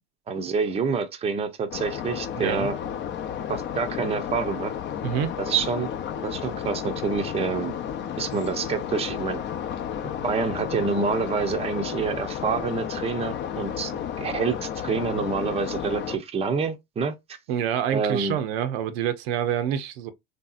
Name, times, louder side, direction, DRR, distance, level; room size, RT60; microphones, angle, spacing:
voice 1, 0.3-2.8 3.5-4.7 5.4-5.9 6.2-7.7 8.2-9.4 10.2-17.1 17.9-18.4, right 5 dB, 20° right, 0.6 m, -27 dB
sound 1, 1.7-16.2, left 9 dB, 35° left, 0.6 m, -32 dB
voice 2, 2.3-2.7 5.0-5.3 17.5-20.1, right 9 dB, 75° right, 0.6 m, -27 dB
3.3 x 2.7 x 2.3 m
supercardioid pair, 100°, 30 cm